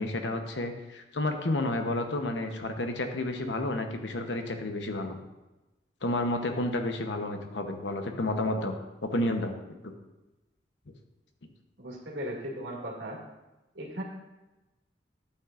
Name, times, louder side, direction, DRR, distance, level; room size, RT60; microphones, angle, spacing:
voice 1, 0.0-5.2 6.0-8.8 9.0-9.5 9.8-9.9, left 2 dB, 80° left, 5 dB, 0.9 m, -31 dB
voice 2, 11.8-13.2 13.7-14.0, equal, 80° right, -3 dB, 2.1 m, -37 dB
11.5 x 8.4 x 2.5 m, 1.1 s
head